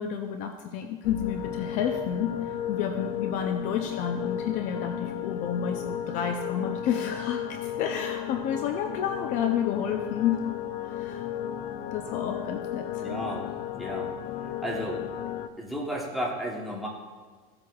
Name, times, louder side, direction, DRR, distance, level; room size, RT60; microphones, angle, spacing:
voice 1, 0.0-10.4 10.8-11.3 11.9-13.1, left 8 dB, 40° left, 5 dB, 0.5 m, -30 dB
sound 1, 1.0-15.5, left 10 dB, 90° left, 0.5 m, -34 dB
voice 2, 13.0-14.1 14.6-15.0 15.6-16.9, equal, ahead, -3 dB, 1.1 m, -33 dB
14.5 x 7.7 x 2.3 m, 1.5 s
cardioid pair, 170°, 19 cm